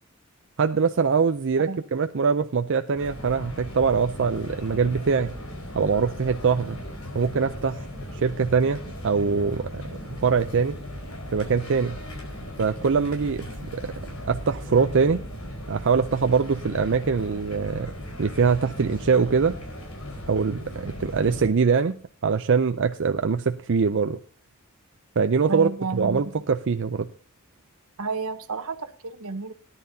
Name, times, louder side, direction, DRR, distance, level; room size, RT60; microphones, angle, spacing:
voice 1, 0.6-5.3 5.7-6.8 7.1-7.8 8.1-10.7 11.3-12.0 12.6-13.9 14.3-15.2 15.7-17.9 18.2-19.6 20.3-24.2 25.2-27.1, right 5 dB, 60° right, 8 dB, 0.5 m, -23 dB
sound 1, 2.9-21.5, left 1 dB, 80° left, 4.7 m, -37 dB
voice 2, 25.5-26.2 28.0-29.5, right 4 dB, 80° right, 11 dB, 1.1 m, -31 dB
17.5 x 10.5 x 2.8 m, 0.41 s
head